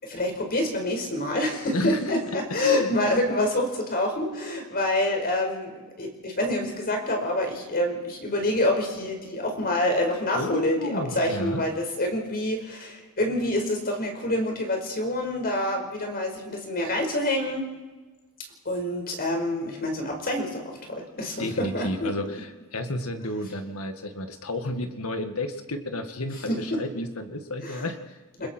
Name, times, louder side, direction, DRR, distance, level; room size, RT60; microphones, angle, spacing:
voice 1, 0.0-17.7 18.6-22.1 26.5-26.8 27.6-27.9 28.4-28.5, left 1 dB, 45° left, 3 dB, 4.9 m, -27 dB
voice 2, 1.7-2.3 2.6-2.9 10.3-11.6 21.4-28.5, left 1 dB, 75° left, 6 dB, 2.0 m, -31 dB
29.5 x 21.0 x 4.5 m, 1.2 s
head